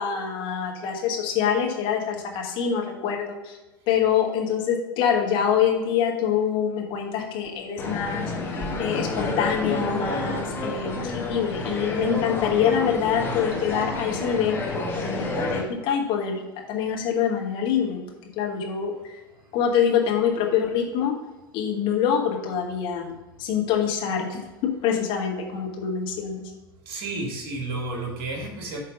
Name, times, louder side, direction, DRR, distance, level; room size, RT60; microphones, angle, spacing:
voice 1, 0.0-3.5 3.9-16.4 16.7-18.0 18.4-18.9 19.5-21.1 21.5-23.1 23.4-26.4, left 8 dB, 45° left, 1 dB, 1.3 m, -25 dB
sound 1, 7.8-15.6, left 3 dB, 20° left, 1.4 m, -29 dB
voice 2, 26.9-28.8, right 2 dB, 45° right, 1 dB, 1.6 m, -31 dB
8.1 x 3.3 x 5.0 m, 1.1 s
figure-of-eight pair, 80°, 12 cm